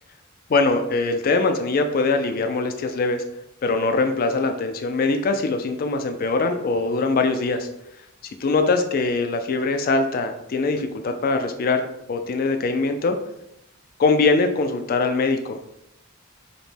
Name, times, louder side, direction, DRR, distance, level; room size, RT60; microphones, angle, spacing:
voice 1, 0.5-3.2 3.6-7.7 8.4-11.8 12.1-13.2 14.0-15.6, left 3 dB, 45° left, 7 dB, 0.3 m, -22 dB
5.0 x 2.2 x 3.3 m, 0.81 s
head